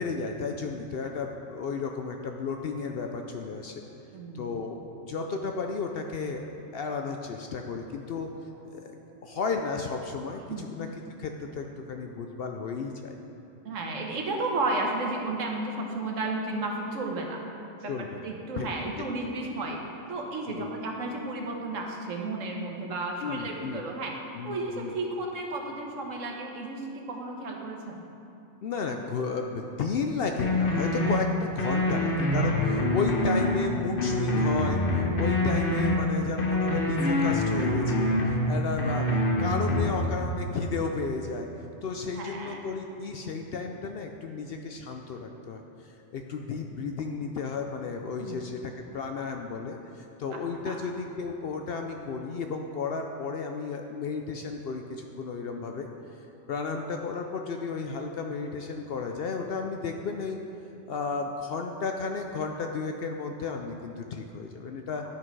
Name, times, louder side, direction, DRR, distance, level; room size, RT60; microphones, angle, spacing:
voice 1, 0.0-3.8 4.3-4.8 5.1-6.4 6.7-8.3 8.7-8.9 9.2-10.9 11.2-13.2 17.9-18.2 18.6-18.7 20.5-20.7 23.2-23.8 24.3-24.9 28.6-41.5 41.8-55.9 56.5-60.4 60.9-65.0, left 4 dB, 65° left, 3 dB, 0.6 m, -33 dB
voice 2, 4.1-4.5 9.1-9.3 10.5-10.6 13.6-17.4 17.8-17.9 18.2-19.8 20.1-24.1 24.4-28.1 42.1-42.6 48.2-48.4 50.3-50.4 50.6-50.8, right 2 dB, 75° right, 1 dB, 1.4 m, -33 dB
sound 1, 30.4-31.2 31.6-33.6 34.0-36.0 36.4-38.4 38.8-40.0, left 1 dB, 45° left, 1.1 m, -25 dB
10.0 x 6.1 x 4.6 m, 2.7 s
omnidirectional pair, 1.3 m